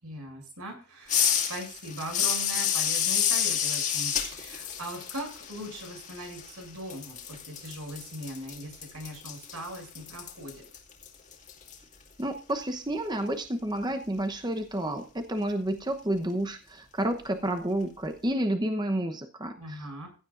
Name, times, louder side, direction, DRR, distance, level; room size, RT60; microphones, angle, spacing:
voice 1, 0.0-10.6 19.6-20.1, right 1 dB, 85° right, 3 dB, 7.6 m, -40 dB
sound 1, 1.1-6.6 6.9-11.8, left 9 dB, 35° left, 2.3 m, -30 dB
voice 2, 12.2-20.0, right 1 dB, 20° right, 5 dB, 0.9 m, -30 dB
16.0 x 12.0 x 2.6 m, 0.34 s
head